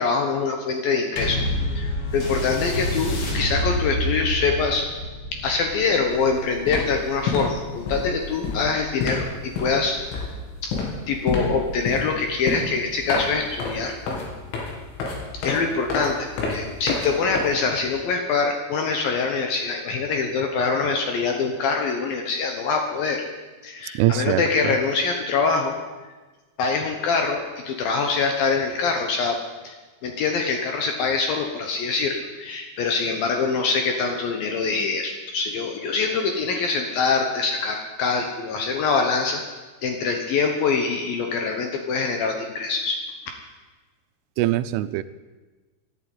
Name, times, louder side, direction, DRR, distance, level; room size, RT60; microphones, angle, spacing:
voice 1, 0.0-1.4 1.8-4.9 5.3-10.2 10.6-10.8 11.1-13.9 15.3-23.3 23.6-25.8 26.6-29.4 29.6-29.8 30.0-39.4 39.8-43.0, left 4 dB, 70° left, 3 dB, 2.3 m, -24 dB
sound 1, 1.2-9.9 10.7-10.8, left 1 dB, 40° left, 2.3 m, -29 dB
sound 2, 6.1-6.3 6.5-18.0, left 3 dB, 90° left, 5.3 m, -29 dB
voice 2, 24.0-24.4 44.4-45.0, right 14 dB, 85° right, 13 dB, 3.1 m, -21 dB
12.5 x 11.5 x 9.3 m, 1.3 s
omnidirectional pair, 5.5 m